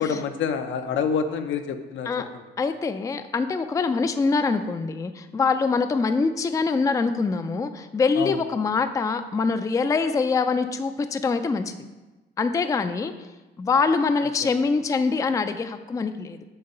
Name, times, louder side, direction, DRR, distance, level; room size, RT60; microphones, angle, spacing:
voice 1, 0.0-2.4 8.2-8.4, left 6 dB, 75° left, 7 dB, 0.6 m, -27 dB
voice 2, 2.6-11.8 12.4-13.1 13.6-16.4, left 4 dB, 15° left, 9 dB, 0.3 m, -24 dB
7.8 x 2.9 x 5.4 m, 1.1 s
cardioid pair, 90°, 20 cm